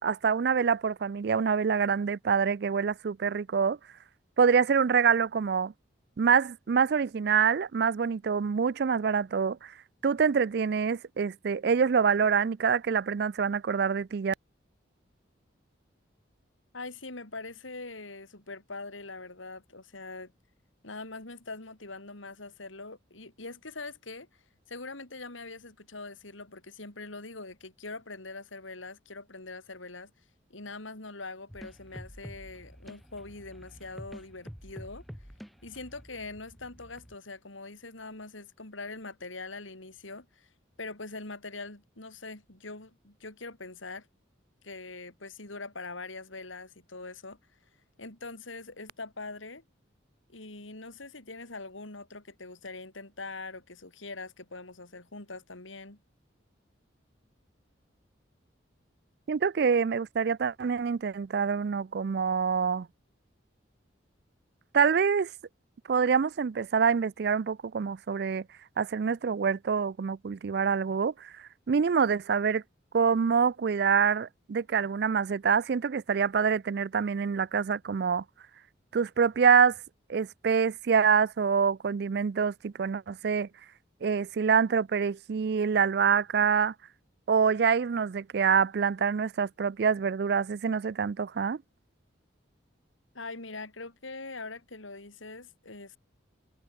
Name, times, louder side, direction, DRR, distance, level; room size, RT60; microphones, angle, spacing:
voice 1, 0.0-3.8 4.4-5.7 6.2-9.7 10.0-14.3 59.3-62.9 64.7-65.3 65.9-68.4 68.8-72.6 72.9-78.2 78.9-79.8 80.1-83.5 84.0-86.7 87.3-91.6, right 6 dB, 55° right, 0.4 m, -26 dB
voice 2, 16.7-20.3 20.8-24.3 24.7-30.1 30.5-35.0 35.6-40.5 40.8-44.1 44.6-47.4 48.0-49.6 50.3-56.0 93.1-96.0, left 3 dB, 85° left, 3.8 m, -43 dB
sound 1, 31.5-37.2, equal, ahead, 2.0 m, -48 dB
head